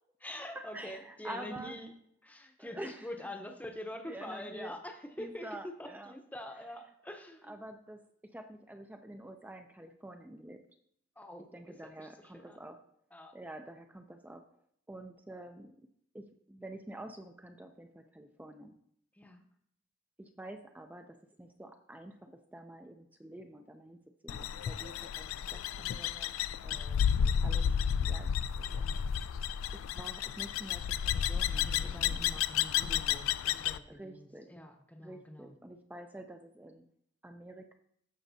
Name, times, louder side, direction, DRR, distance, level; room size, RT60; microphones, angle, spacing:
voice 1, 0.2-1.9 2.2-7.5 11.2-11.6 12.0-12.1 12.3-12.6 13.1-13.4 19.1-19.4 26.7-27.1 31.5-35.5, left 1 dB, 10° left, 4 dB, 0.7 m, -45 dB
voice 2, 0.7-1.8 2.6-3.1 4.1-4.7 5.2-6.1 7.5-10.6 11.5-12.8 13.3-14.4 14.9-15.7 16.1-18.8 20.2-24.0 24.2-25.2 25.5-27.0 27.4-27.7 28.0-28.3 28.6-28.8 29.7-32.2 33.9-34.5 35.0-36.8 37.2-37.7, right 1 dB, 10° right, 5 dB, 0.4 m, -48 dB
sound 1, 24.3-33.8, left 8 dB, 85° left, 0.3 m, -32 dB
14.0 x 5.3 x 2.7 m, 0.70 s
head